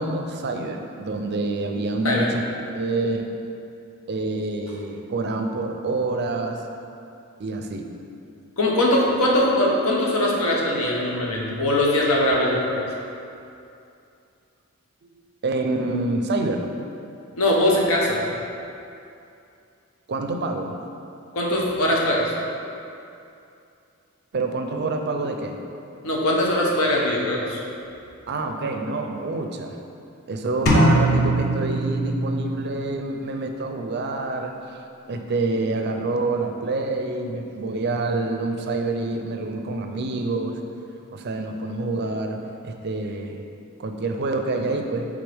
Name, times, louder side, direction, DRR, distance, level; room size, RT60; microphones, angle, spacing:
voice 1, 0.0-2.4 2.7-3.3 4.1-6.6 7.4-7.9 15.0-15.1 15.4-16.7 20.1-20.8 24.3-25.6 28.3-29.8 30.3-34.6 35.1-40.6 41.1-42.4 42.6-43.4 43.8-45.1, right 2 dB, 50° right, 4 dB, 0.5 m, -27 dB
voice 2, 8.6-12.8 17.4-18.2 21.3-22.3 26.0-27.6, left 1 dB, 75° left, -2 dB, 1.0 m, -21 dB
sound 1, 30.7-32.6, right 1 dB, 45° left, 0.7 m, -20 dB
7.8 x 3.7 x 3.4 m, 2.6 s
head